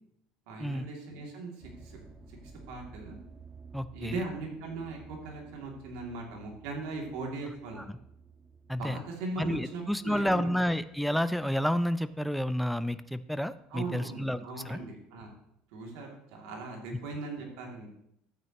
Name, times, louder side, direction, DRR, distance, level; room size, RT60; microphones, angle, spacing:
voice 1, 0.5-1.5 1.8-2.0 2.3-2.4 2.7-3.2 3.9-7.9 8.8-10.5 13.7-15.3 15.7-17.9, right 3 dB, 80° right, 0 dB, 2.6 m, -39 dB
sound 1, 1.6-13.9 14.4-14.8 15.4-15.5 15.8-15.9, right 4 dB, 25° right, 1.3 m, -54 dB
voice 2, 3.7-4.2 7.8-7.9 8.7-9.0 9.4-14.8, equal, ahead, 13 dB, 0.4 m, -30 dB
12.5 x 8.9 x 3.0 m, 0.76 s
cardioid pair, 125°, 2 cm